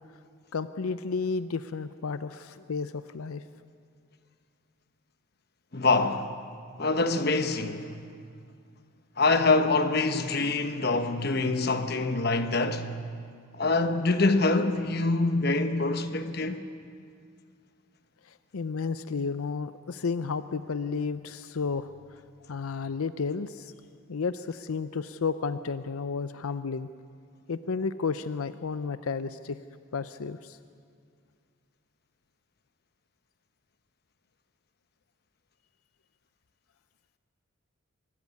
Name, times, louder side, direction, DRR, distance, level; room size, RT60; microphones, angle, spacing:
voice 1, 0.5-3.4 18.2-22.2 22.5-23.7 24.1-26.9 27.5-29.6 29.9-30.6, left 5 dB, 90° left, 0.6 m, -32 dB
voice 2, 5.7-6.3 6.8-8.0 9.2-12.9 13.5-16.6, left 3 dB, 45° left, 1.1 m, -25 dB
24.0 x 13.5 x 9.6 m
head